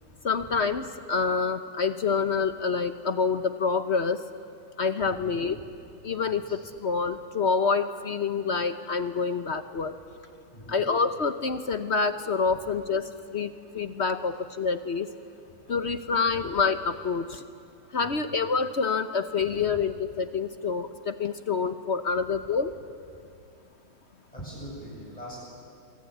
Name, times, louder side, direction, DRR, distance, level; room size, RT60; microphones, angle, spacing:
voice 1, 0.2-4.2 4.8-5.6 6.0-10.0 10.7-15.1 15.7-17.4 17.9-22.7, left 5 dB, 50° left, 10 dB, 0.8 m, -27 dB
voice 2, 5.0-5.7 6.3-6.6 10.5-10.8 12.5-12.6 15.5-15.6 16.3-16.4 18.0-18.3 19.4-19.8 23.1-23.2 24.3-25.4, equal, 20° left, -5 dB, 7.5 m, -44 dB
26.0 x 23.5 x 9.4 m, 2.4 s
omnidirectional pair, 2.1 m